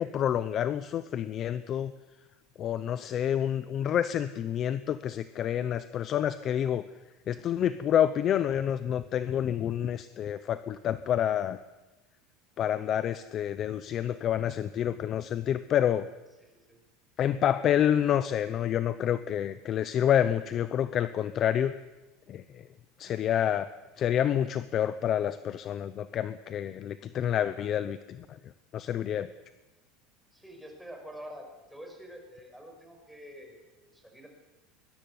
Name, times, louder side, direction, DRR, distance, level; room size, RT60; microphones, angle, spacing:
voice 1, 0.0-1.9 2.6-6.8 7.3-11.6 12.6-16.1 17.2-21.7 22.3-22.4 23.0-23.7 24.0-28.4 28.7-29.3, left 10 dB, 30° left, 13 dB, 0.8 m, -28 dB
voice 2, 16.4-16.8 30.3-34.3, equal, ahead, 2 dB, 5.6 m, -47 dB
22.5 x 21.0 x 9.6 m, 1.1 s
cardioid pair, 165°, 0 cm